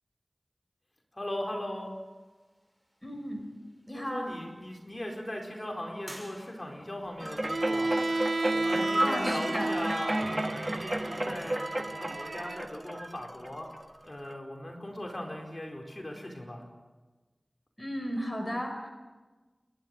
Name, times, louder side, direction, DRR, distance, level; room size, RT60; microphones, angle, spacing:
voice 1, 1.1-1.9 3.9-7.9 8.5-13.7 14.0-16.6, left 1 dB, 35° left, 1 dB, 4.5 m, -38 dB
sound 1, 1.7-10.2, equal, 10° right, 6.6 m, -56 dB
voice 2, 3.0-3.4 3.9-4.4 9.0-9.7 17.8-18.9, equal, 10° left, 3 dB, 4.1 m, -34 dB
sound 2, 7.2-13.8 14.3-14.4, right 1 dB, 30° right, 1.3 m, -33 dB
Bowed string instrument, 7.4-12.7, right 2 dB, 65° right, 0.6 m, -32 dB
29.0 x 12.0 x 7.9 m, 1.2 s
wide cardioid pair, 45°, 0 cm